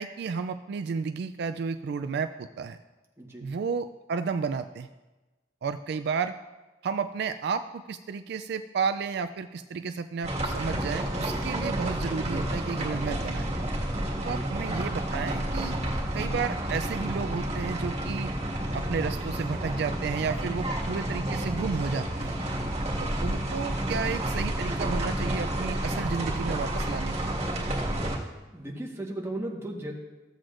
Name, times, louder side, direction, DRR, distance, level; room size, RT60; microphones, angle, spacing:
voice 1, 0.0-2.8 3.4-4.9 5.6-6.3 6.8-13.5 14.2-15.8 16.1-18.3 18.7-22.4 23.0-27.4, right 5 dB, 60° right, 10 dB, 0.3 m, -32 dB
voice 2, 3.2-3.5 14.2-14.6 28.4-29.9, right 1 dB, 15° right, -1 dB, 1.3 m, -36 dB
sound 1, 10.2-28.2, right 1 dB, 35° right, 1.8 m, -30 dB
15.0 x 7.7 x 2.5 m, 1.2 s
head